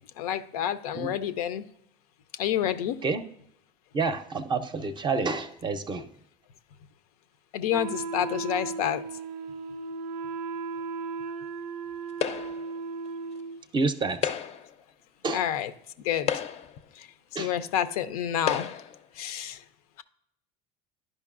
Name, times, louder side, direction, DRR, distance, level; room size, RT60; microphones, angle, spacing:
voice 1, 0.2-1.6 2.4-3.1 7.5-9.0 15.3-15.7 16.0-16.3 17.0-17.1 17.3-18.7 19.2-19.6, left 10 dB, 90° left, 12 dB, 0.5 m, -29 dB
voice 2, 3.9-6.1 13.7-14.2 15.2-15.4 17.4-17.5, right 4 dB, 25° right, 9 dB, 0.5 m, -28 dB
Wind instrument woodwind instrument, 7.7-13.6, right 4 dB, 85° right, 0.4 m, -36 dB
sound 1, 12.2-12.7 14.1-14.7 15.6-15.7 16.2-16.8 17.7-17.8 18.4-19.0, left 9 dB, 35° left, 0.4 m, -31 dB
11.0 x 5.2 x 2.4 m, 0.76 s
supercardioid pair, 110°, 18 cm